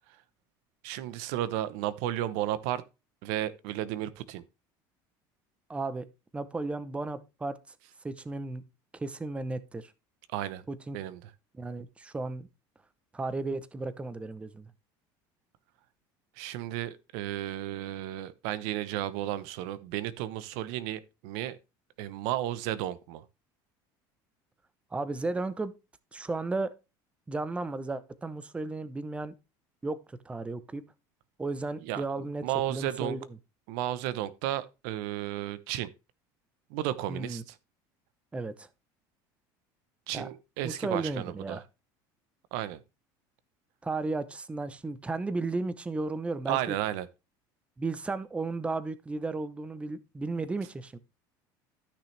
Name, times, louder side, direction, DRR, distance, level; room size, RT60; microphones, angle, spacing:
voice 1, 0.8-2.8 3.2-4.4 10.3-10.6 10.9-11.3 16.4-21.6 22.0-23.2 31.8-32.0 32.4-33.2 33.7-35.9 36.7-37.6 40.1-41.6 42.5-42.8 46.5-47.1, right 13 dB, 75° right, 0.8 m, -33 dB
voice 2, 5.7-6.1 6.3-7.7 8.0-8.6 8.9-9.9 10.7-11.0 11.5-12.5 13.1-14.7 24.9-25.7 26.1-26.7 27.3-29.3 29.8-30.8 31.4-32.4 32.7-33.3 37.1-37.4 38.3-38.7 40.1-40.3 40.6-41.6 43.8-46.8 47.8-51.0, right 3 dB, 10° right, 0.7 m, -34 dB
13.0 x 6.1 x 3.2 m
cardioid pair, 125°, 10 cm